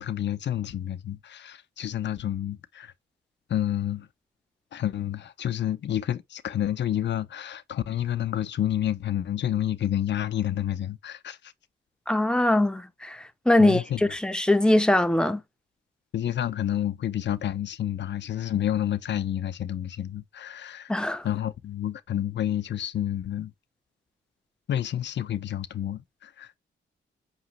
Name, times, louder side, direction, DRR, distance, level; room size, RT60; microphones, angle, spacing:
voice 1, 0.0-2.9 3.5-4.1 4.7-11.5 13.6-14.0 16.1-20.9 21.2-23.5 24.7-26.6, left 11 dB, 60° left, 0.6 m, -29 dB
voice 2, 12.1-13.8 14.1-15.4 20.9-21.3, left 1 dB, 5° left, 0.7 m, -22 dB
4.8 x 3.0 x 2.9 m
supercardioid pair, 50°, 21 cm